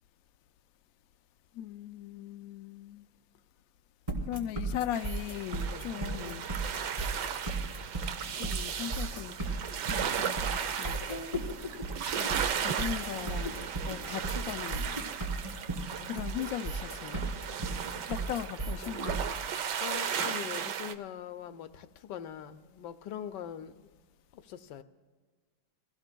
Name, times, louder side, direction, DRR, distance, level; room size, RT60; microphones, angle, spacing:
voice 1, 1.5-3.1 4.3-6.5 8.4-9.4 9.9-11.0 12.1-15.0 16.1-17.3 18.1-19.3, left 11 dB, 70° left, 0.9 m, -38 dB
sound 1, 4.1-19.4, right 2 dB, 20° right, 2.9 m, -35 dB
sound 2, 4.9-20.9, right 8 dB, 85° right, 1.4 m, -36 dB
voice 2, 19.8-23.9 24.3-24.8, left 9 dB, 85° left, 1.3 m, -42 dB
26.0 x 17.0 x 2.3 m
omnidirectional pair, 1.8 m